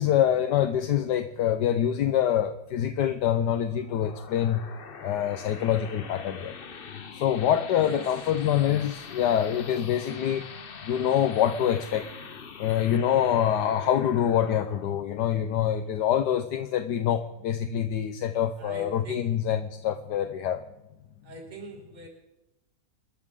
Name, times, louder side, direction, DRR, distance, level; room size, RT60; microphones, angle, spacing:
voice 1, 0.0-4.6 5.0-6.6 7.1-10.5 10.8-12.1 12.6-20.6, left 10 dB, 75° left, 8 dB, 1.4 m, -25 dB
sound 1, 3.6-16.7, left 5 dB, 40° left, 0.9 m, -44 dB
voice 2, 18.6-19.2 21.2-22.1, right 1 dB, 25° right, 1 dB, 2.4 m, -41 dB
28.0 x 13.0 x 3.7 m, 0.94 s
omnidirectional pair, 1.8 m